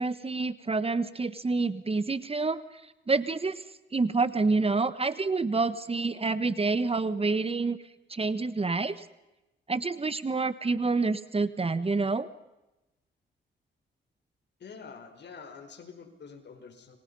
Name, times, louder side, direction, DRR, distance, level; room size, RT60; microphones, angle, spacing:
voice 1, 0.0-2.6 3.1-3.6 3.9-7.8 8.1-9.0 9.7-12.3, right 3 dB, 30° right, 14 dB, 1.4 m, -28 dB
voice 2, 14.6-17.0, left 5 dB, 60° left, 7 dB, 5.0 m, -46 dB
30.0 x 24.0 x 5.6 m, 0.99 s
cardioid pair, 75°, 20 cm